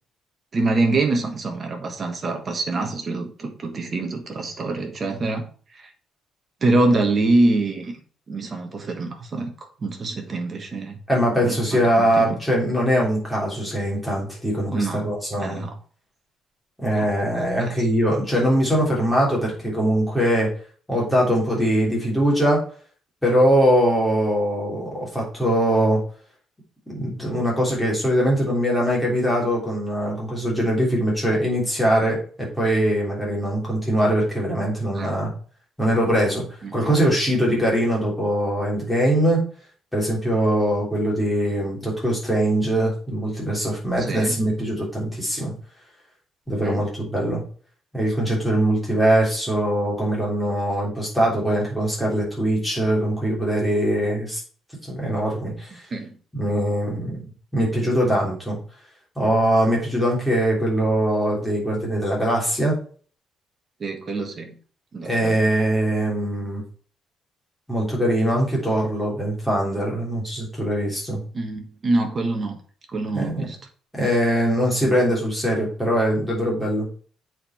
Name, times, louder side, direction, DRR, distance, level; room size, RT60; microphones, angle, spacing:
voice 1, 0.5-5.5 5.7-5.9 6.6-8.0 8.3-9.5 9.8-11.0 11.4-12.3 14.7-15.0 15.4-15.7 16.9-17.1 17.4-17.7 34.9-35.1 36.6-36.9 44.1-44.4 46.6-46.8 55.9-56.1 63.8-64.6 64.9-65.4 71.3-72.6 72.9-73.6, right 2 dB, 30° right, 4 dB, 1.5 m, -25 dB
voice 2, 11.1-15.7 16.8-20.5 20.9-22.6 23.2-26.0 26.9-35.3 35.8-36.4 36.7-39.4 39.9-45.5 46.5-47.4 47.9-54.4 54.8-55.8 56.3-57.3 57.5-58.6 59.2-62.7 65.0-66.6 67.7-71.2 73.1-73.5 73.9-76.9, right 1 dB, 5° left, -4 dB, 3.4 m, -22 dB
7.9 x 4.7 x 4.4 m, 0.43 s
cardioid pair, 170°, 0 cm